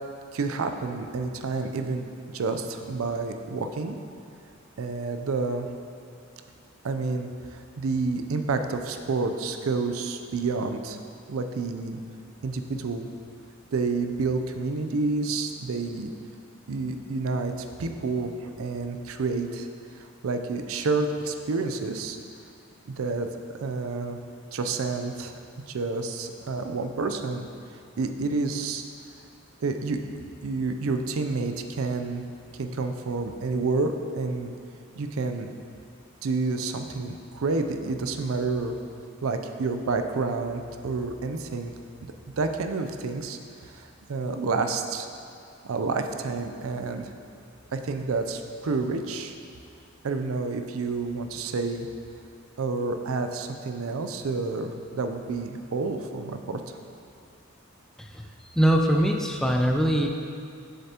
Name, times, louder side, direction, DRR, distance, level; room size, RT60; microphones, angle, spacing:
voice 1, 0.3-2.0 2.3-4.0 4.8-5.7 6.8-11.0 11.3-12.0 12.4-13.1 13.7-16.1 16.7-19.7 20.0-22.2 22.9-23.3 23.6-24.2 24.5-25.3 25.7-27.5 28.0-28.8 29.6-30.0 30.4-32.2 32.5-34.5 35.0-35.5 36.2-38.7 39.2-41.7 42.0-45.1 45.6-47.1 47.7-49.3 50.0-51.9 52.6-56.8, right 3 dB, 85° right, 7 dB, 0.5 m, -29 dB
voice 2, 58.5-60.1, equal, ahead, 2 dB, 0.3 m, -22 dB
7.6 x 6.8 x 2.8 m, 2.4 s
head